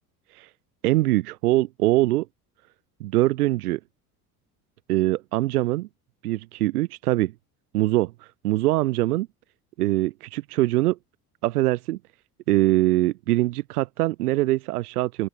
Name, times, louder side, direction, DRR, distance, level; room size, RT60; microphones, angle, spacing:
voice 1, 0.8-2.3 3.0-3.8 4.9-5.9 6.2-7.3 7.7-8.1 8.4-9.3 9.8-11.0 11.4-12.0 12.5-15.3, right 17 dB, 75° right, 1.8 m, -23 dB
open air
hypercardioid pair, 65°, 45 cm